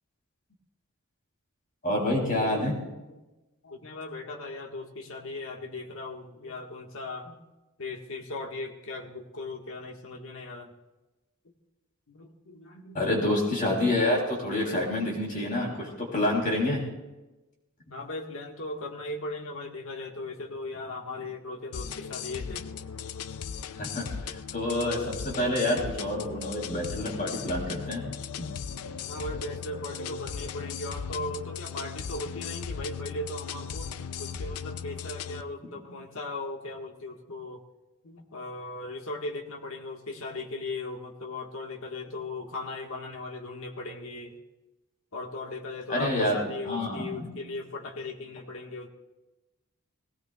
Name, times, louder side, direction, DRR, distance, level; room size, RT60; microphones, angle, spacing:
voice 1, 1.8-2.8 12.9-16.8 23.8-28.0 28.4-28.5 45.9-47.3, left 1 dB, 40° left, -1 dB, 3.2 m, -28 dB
voice 2, 3.6-7.4 7.8-10.7 12.1-13.3 17.9-22.7 23.1-23.2 29.1-37.6 38.0-44.4 45.1-48.9, left 2 dB, 65° left, 1 dB, 1.6 m, -38 dB
sound 1, 21.7-35.4, left 7 dB, 85° left, 0.5 m, -37 dB
19.0 x 17.5 x 2.4 m, 1.1 s
head